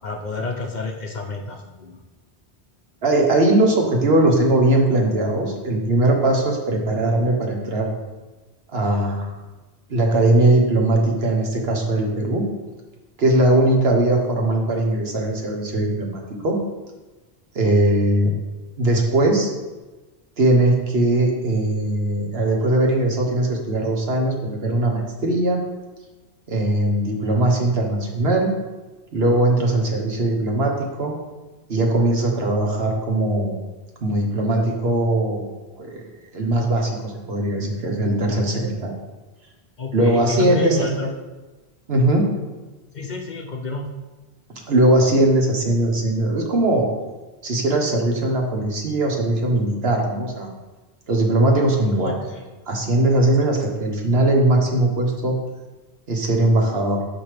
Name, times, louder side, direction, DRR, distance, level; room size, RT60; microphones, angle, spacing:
voice 1, 0.0-2.0 39.8-41.1 42.9-43.9 52.0-52.4, left 3 dB, 50° left, 3 dB, 0.7 m, -29 dB
voice 2, 3.0-7.9 8.7-9.3 9.9-12.4 13.2-16.6 17.5-18.3 18.8-19.5 20.4-25.6 26.5-28.5 29.1-31.1 31.7-33.6 34.0-35.5 35.7-36.1 36.3-38.9 39.9-41.1 41.9-42.2 44.7-46.9 47.4-50.5 51.1-52.1 52.7-55.4 56.1-57.0, right 1 dB, 70° right, 1 dB, 1.4 m, -20 dB
9.2 x 5.1 x 3.4 m, 1.2 s
omnidirectional pair, 1.1 m